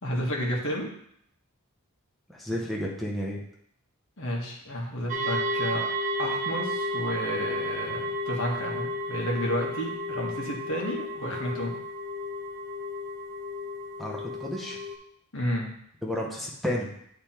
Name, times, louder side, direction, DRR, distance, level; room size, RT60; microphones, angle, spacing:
voice 1, 0.0-0.9 4.2-5.9 6.2-11.8 15.3-15.8, equal, 60° left, -1 dB, 1.6 m, -31 dB
voice 2, 2.3-3.4 14.0-14.8 16.0-16.9, left 1 dB, ahead, -3 dB, 1.0 m, -31 dB
sound 1, 5.1-14.9, equal, 35° right, 1.0 m, -32 dB
9.6 x 3.5 x 4.4 m, 0.70 s
head